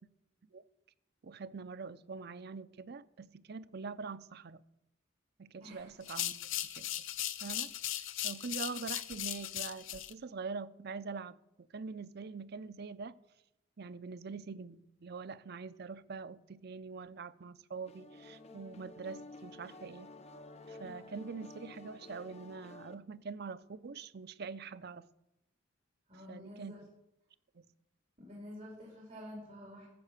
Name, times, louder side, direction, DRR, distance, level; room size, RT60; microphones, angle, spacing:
voice 1, 1.2-4.6 5.4-6.9 7.4-7.7 8.2-13.2 13.8-20.1 20.7-25.1 26.3-26.7 27.5-27.6, right 4 dB, 55° right, 0.6 m, -44 dB
voice 2, 5.6-6.0 26.1-26.8 28.2-29.9, left 1 dB, 35° right, 5.1 m, -49 dB
sound 1, 6.0-10.1, left 12 dB, 85° left, 0.7 m, -38 dB
sound 2, 17.9-22.9, left 2 dB, 35° left, 0.9 m, -52 dB
13.0 x 7.5 x 7.3 m
head